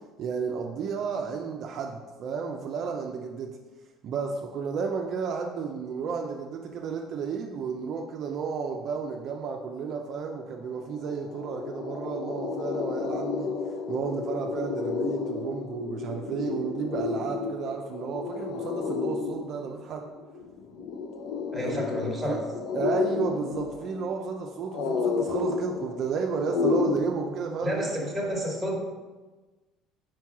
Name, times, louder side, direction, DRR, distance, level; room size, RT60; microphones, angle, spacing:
voice 1, 0.2-3.6 4.0-13.5 13.9-20.1 21.7-21.8 22.3-22.4 22.7-27.9, right 5 dB, 50° right, 2 dB, 0.5 m, -32 dB
sound 1, 10.4-10.5 10.8-27.0, left 4 dB, 70° left, 0.6 m, -31 dB
voice 2, 21.5-22.4 27.6-28.8, equal, 5° right, -3 dB, 1.4 m, -30 dB
4.5 x 4.5 x 4.7 m, 1.2 s
cardioid pair, 115°, 0 cm